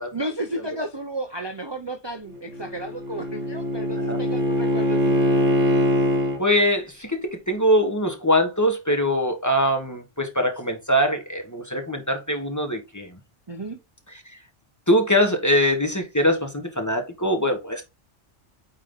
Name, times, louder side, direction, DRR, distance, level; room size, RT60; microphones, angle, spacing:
voice 1, 0.1-5.2 13.5-13.8 17.8-17.9, right 1 dB, 25° right, 0.7 m, -33 dB
Bowed string instrument, 2.3-6.4, equal, 70° right, 1.6 m, -22 dB
voice 2, 6.4-13.1 14.9-17.8, equal, 15° left, 1.2 m, -22 dB
8.8 x 3.8 x 3.7 m
omnidirectional pair, 1.2 m